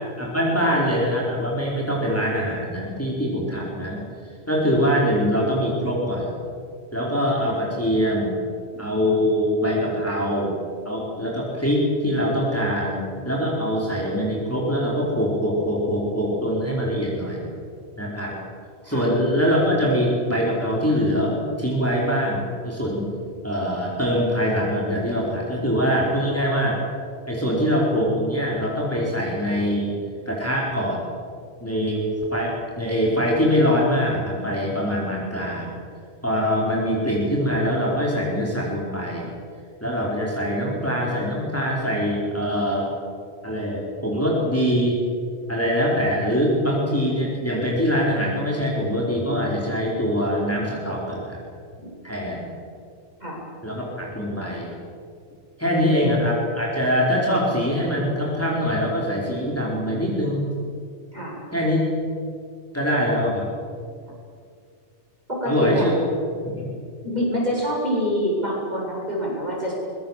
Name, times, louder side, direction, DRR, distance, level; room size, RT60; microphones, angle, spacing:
voice 1, 0.2-4.0 4.5-6.3 6.9-8.3 8.7-10.5 10.8-17.5 18.0-18.3 18.8-23.1 23.4-26.8 27.3-29.9 30.3-31.0 31.6-32.0 32.3-35.7 36.2-39.3 39.8-42.9 43.4-45.0 45.5-51.4 52.0-52.4 53.6-54.7 55.6-60.5 61.5-61.8 62.7-63.5 65.5-65.9 66.4-66.6, equal, 10° left, -4 dB, 4.8 m, -23 dB
voice 2, 65.3-66.1 67.0-69.7, equal, 35° right, -4 dB, 7.8 m, -26 dB
24.5 x 21.0 x 7.6 m, 2.3 s
omnidirectional pair, 1.2 m